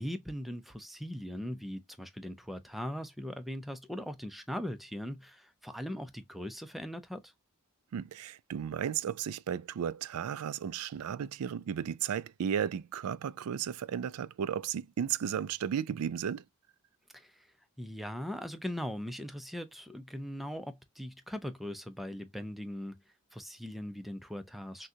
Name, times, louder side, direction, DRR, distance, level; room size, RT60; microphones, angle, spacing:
voice 1, 0.0-7.3 17.1-17.5 17.8-23.0 23.3-24.9, equal, ahead, 0.5 m, -40 dB
voice 2, 7.9-16.4, right 8 dB, 75° right, 0.4 m, -34 dB
6.2 x 2.3 x 2.7 m
head